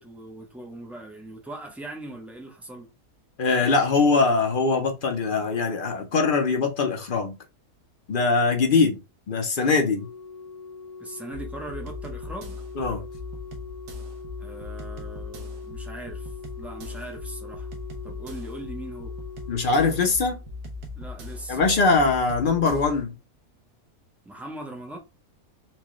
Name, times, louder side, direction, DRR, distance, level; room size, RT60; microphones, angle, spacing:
voice 1, 0.0-2.9 11.0-12.6 14.4-17.7 18.0-19.1 21.0-21.6 24.2-25.0, right 1 dB, ahead, 0.3 m, -40 dB
voice 2, 3.4-7.4 8.1-9.0 9.3-10.1 12.8-13.0 19.5-20.4 21.5-23.1, left 4 dB, 50° left, 0.6 m, -22 dB
Organ, 9.9-20.8 22.0-22.1, left 4 dB, 80° left, 1.2 m, -42 dB
sound 1, 11.3-23.0, left 3 dB, 85° right, 1.3 m, -39 dB
4.4 x 2.2 x 3.1 m
omnidirectional pair, 1.6 m